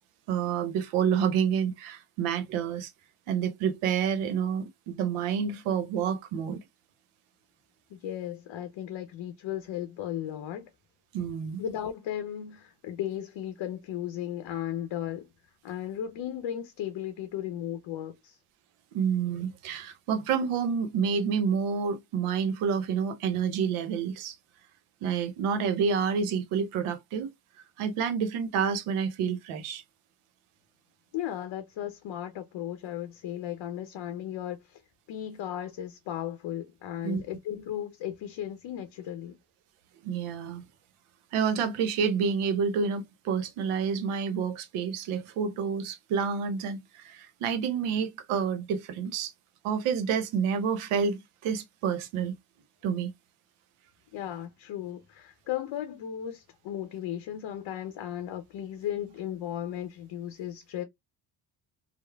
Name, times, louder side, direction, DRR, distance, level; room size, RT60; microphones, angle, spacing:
voice 1, 0.3-2.9 3.3-6.6 11.1-11.6 18.9-24.4 25.0-27.3 27.8-29.8 37.0-37.2 40.0-40.6 41.3-49.3 49.6-52.3 52.8-53.1, right 6 dB, 80° right, 0.8 m, -28 dB
voice 2, 7.9-10.7 11.6-15.3 15.6-18.4 31.1-34.8 35.1-39.4 54.1-60.8, left 11 dB, 60° left, 0.6 m, -36 dB
3.0 x 2.0 x 2.2 m
supercardioid pair, 65°, 50 cm